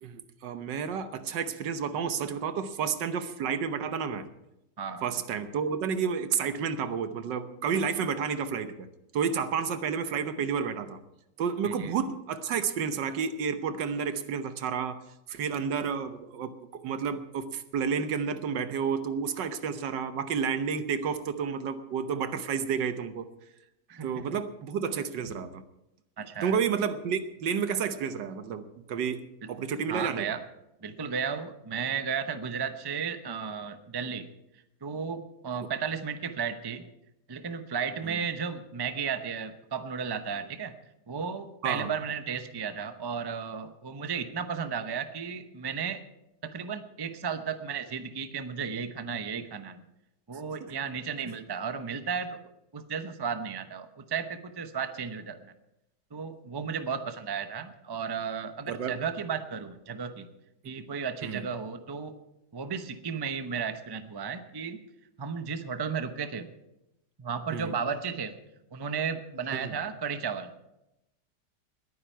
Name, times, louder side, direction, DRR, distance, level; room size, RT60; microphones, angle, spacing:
voice 1, 0.0-4.3 5.0-8.9 9.1-11.0 11.4-15.0 15.3-23.3 24.0-25.6 26.4-28.6 28.9-29.2 29.5-30.2 38.0-38.2 41.6-41.9 50.6-50.7 58.7-59.0 61.2-61.5 67.5-67.7 69.6-69.7, right 6 dB, 80° right, 10 dB, 1.6 m, -31 dB
voice 2, 23.9-24.2 26.2-26.6 29.9-30.4 30.8-34.3 34.8-36.9 37.3-40.7 41.1-46.0 46.4-49.8 50.3-52.4 52.7-55.5 56.1-60.3 60.6-62.1 62.5-64.8 65.2-66.5 67.2-68.4 68.7-70.5, right 6 dB, 30° right, 9 dB, 0.4 m, -34 dB
20.5 x 9.5 x 4.5 m, 0.89 s
omnidirectional pair, 1.9 m